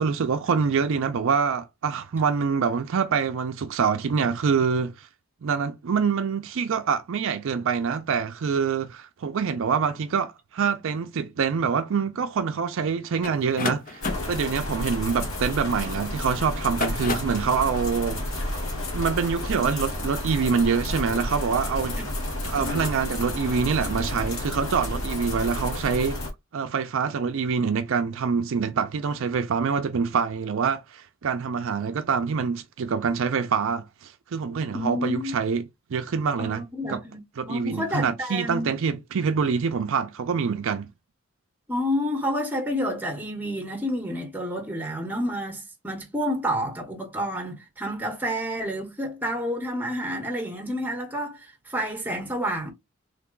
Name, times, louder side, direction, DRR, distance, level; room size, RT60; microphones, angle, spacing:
voice 1, 0.0-5.1 5.4-18.4 18.9-22.0 22.4-26.2 26.5-35.6 35.9-36.6 36.9-37.0 37.4-40.9, right 6 dB, 65° right, 0.4 m, -25 dB
sound 1, 13.2-15.9 16.6-17.5, left 4 dB, 40° left, 0.6 m, -32 dB
sound 2, 14.0-26.3, left 1 dB, 70° left, 1.3 m, -31 dB
voice 2, 34.7-35.4 36.4-37.2 37.5-38.7 41.7-52.7, equal, 10° right, 1.0 m, -29 dB
3.2 x 2.2 x 3.7 m
head